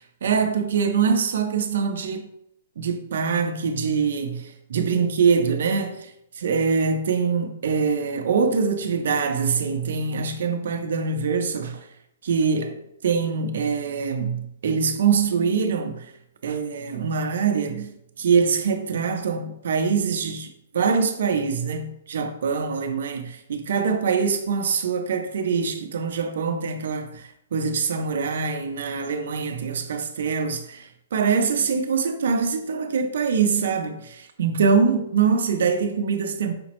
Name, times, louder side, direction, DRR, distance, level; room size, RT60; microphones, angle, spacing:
voice 1, 0.0-2.3 2.8-6.1 6.4-11.8 12.2-16.1 16.4-36.5, right 5 dB, 70° right, 0.5 m, -24 dB
4.9 x 2.0 x 2.9 m
hypercardioid pair, 165°, 0 cm